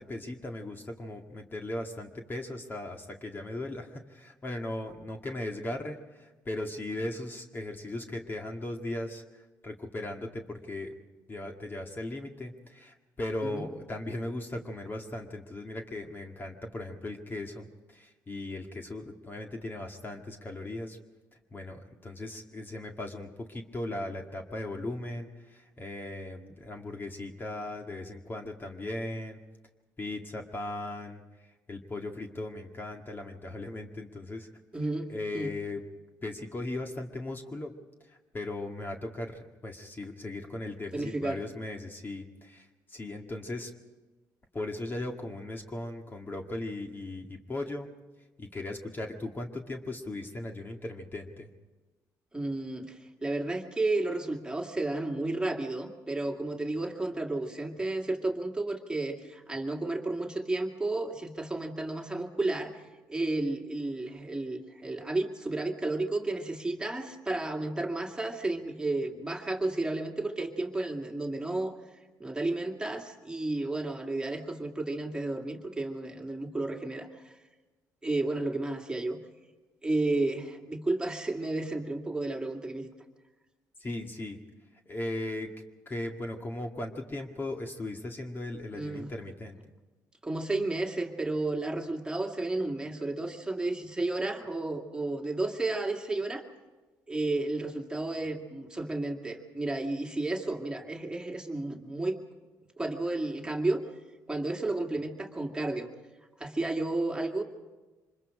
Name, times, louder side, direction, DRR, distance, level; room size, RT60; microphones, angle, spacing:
voice 1, 0.0-10.9 11.3-21.0 21.5-29.4 30.0-31.2 31.7-34.5 35.1-35.8 36.2-37.7 38.1-43.7 44.5-47.9 48.4-51.5 83.8-84.4 84.9-85.5 85.9-89.6, left 2 dB, 30° left, 3 dB, 2.0 m, -38 dB
voice 2, 34.7-35.5 40.9-41.4 52.3-62.8 63.1-71.7 72.2-77.3 78.0-79.2 79.8-82.9 88.7-89.1 90.2-96.4 97.1-102.2 102.8-103.8 104.3-105.9 106.4-107.4, right 2 dB, 10° right, 2 dB, 2.3 m, -32 dB
25.5 x 21.0 x 5.0 m, 1.2 s
cardioid pair, 85°, 7 cm